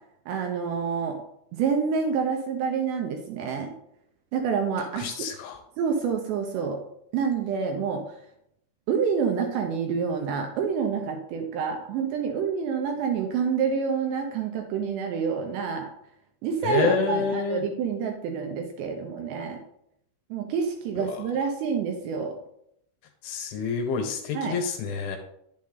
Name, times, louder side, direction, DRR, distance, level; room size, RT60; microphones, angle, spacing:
voice 1, 0.3-1.2 1.5-3.7 4.3-5.3 5.8-6.8 7.1-8.2 8.9-15.9 16.4-19.6 20.3-22.4 24.3-24.6, right 6 dB, 75° right, 3 dB, 2.7 m, -27 dB
voice 2, 4.8-5.6 16.6-17.6 21.0-21.2 23.2-25.2, left 5 dB, 75° left, 5 dB, 3.4 m, -28 dB
10.5 x 7.5 x 3.9 m, 0.76 s
omnidirectional pair, 5.7 m